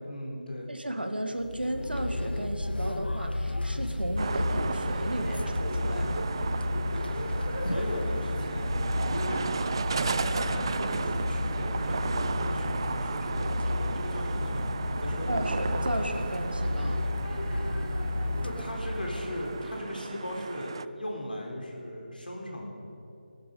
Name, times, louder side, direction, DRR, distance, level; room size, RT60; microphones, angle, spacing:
voice 1, 0.0-0.7 7.6-9.5 10.0-14.6 14.9-15.5 18.4-22.7, left 1 dB, 65° left, -1 dB, 4.0 m, -38 dB
voice 2, 0.7-6.3 15.3-17.0, right 1 dB, 80° right, 6 dB, 1.6 m, -34 dB
sound 1, 1.4-19.6, left 1 dB, 90° left, 0.8 m, -31 dB
sound 2, 4.2-20.9, right 5 dB, 30° right, 0.3 m, -35 dB
17.0 x 12.5 x 5.4 m, 3.0 s
figure-of-eight pair, 160°, 5 cm